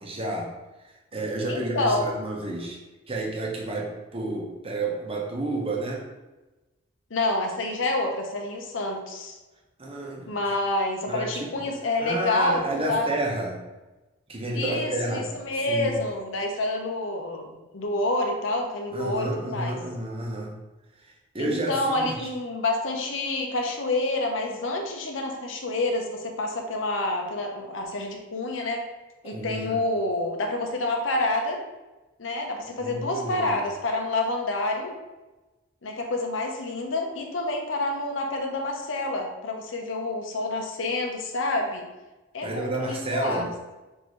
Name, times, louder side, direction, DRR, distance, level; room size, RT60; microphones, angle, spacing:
voice 1, 0.0-0.5 0.8-2.8 3.1-6.0 9.8-10.6 11.1-11.5 12.0-13.6 14.3-15.9 18.9-20.5 21.0-22.3 29.2-29.8 32.8-33.6 42.4-43.5, right 2 dB, 30° right, -1 dB, 0.9 m, -31 dB
voice 2, 1.5-2.1 7.1-9.3 10.3-13.1 14.5-19.8 21.4-28.8 29.2-31.6 32.2-34.9 35.8-41.9 42.3-43.5, left 2 dB, 75° left, 2 dB, 0.8 m, -28 dB
6.4 x 2.7 x 3.1 m, 1.1 s
head